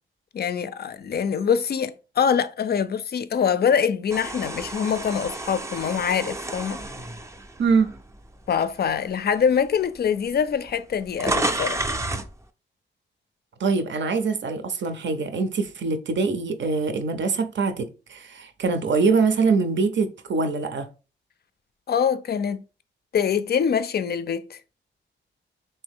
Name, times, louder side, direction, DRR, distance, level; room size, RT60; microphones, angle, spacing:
voice 1, 0.3-6.8 8.5-11.9 21.9-22.6 23.1-24.6, left 7 dB, 55° left, 0.4 m, -24 dB
sound 1, 4.1-8.3 8.9-9.1 10.0-10.1 10.3-12.3, right 2 dB, 15° right, 0.4 m, -30 dB
voice 2, 13.6-20.9, right 4 dB, 65° right, 0.5 m, -23 dB
3.3 x 2.7 x 3.5 m
cardioid pair, 75°, 20 cm